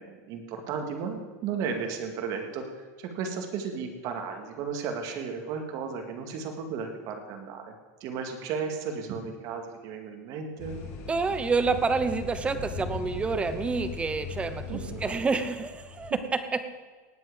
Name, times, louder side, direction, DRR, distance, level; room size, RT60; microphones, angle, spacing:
voice 1, 0.0-10.8 14.7-15.1, right 6 dB, 40° right, 4 dB, 2.1 m, -34 dB
sound 1, 10.6-16.1, left 4 dB, 40° left, 2.7 m, -39 dB
voice 2, 11.1-16.6, right 4 dB, 15° right, 10 dB, 0.8 m, -28 dB
18.5 x 7.8 x 5.2 m, 1.4 s
supercardioid pair, 150°, 9 cm